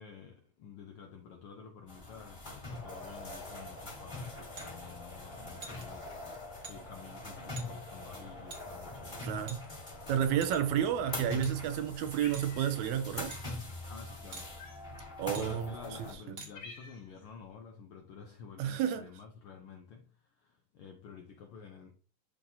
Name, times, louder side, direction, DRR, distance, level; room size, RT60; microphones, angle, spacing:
voice 1, 0.0-9.3 13.9-14.6 15.3-20.1 20.4-21.9, left 6 dB, 75° left, 1.2 m, -50 dB
sound 1, 1.9-16.1, left 2 dB, 20° left, 1.5 m, -43 dB
sound 2, 4.6-4.7 5.6-5.8 6.6-6.8 7.6-7.7 8.5-8.6 9.5-9.9 10.4-10.8 11.4-11.5 12.3-12.5 13.3-13.4 14.3-14.5 15.3-15.5 16.4-16.5, right 4 dB, 45° right, 1.6 m, -46 dB
voice 2, 9.2-9.6 10.1-13.3 15.2-15.7 18.6-19.1, right 10 dB, 80° right, 2.0 m, -31 dB
Cat, 12.2-13.0 13.3-13.5 14.6-15.1 15.8-15.9 16.2-17.2, left 3 dB, 60° left, 3.1 m, -50 dB
12.0 x 4.1 x 2.7 m
omnidirectional pair, 3.4 m